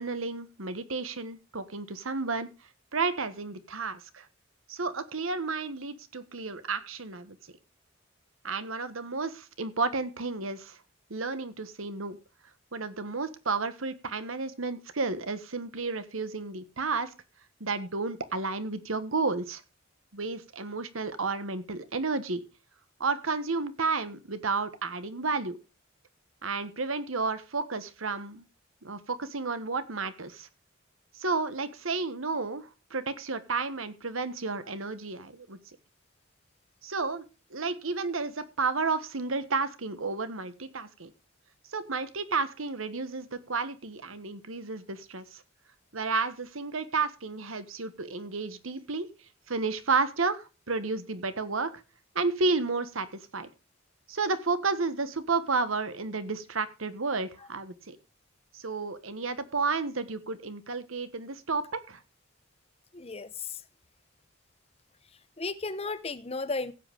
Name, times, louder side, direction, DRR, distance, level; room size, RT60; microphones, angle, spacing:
voice 1, 0.0-2.5 2.9-4.3 4.7-7.4 8.4-10.8 11.1-12.2 12.7-17.1 17.6-19.6 20.1-22.4 23.0-25.6 26.4-28.4 28.8-30.5 31.1-35.6 36.8-37.2 37.5-41.1 41.7-45.4 45.9-49.1 49.5-51.7 52.1-53.5 54.1-58.0 58.5-62.0, right 4 dB, 85° right, 1.4 m, -32 dB
voice 2, 62.9-63.6 65.4-66.7, left 3 dB, 30° left, 0.8 m, -34 dB
16.0 x 7.9 x 3.6 m
head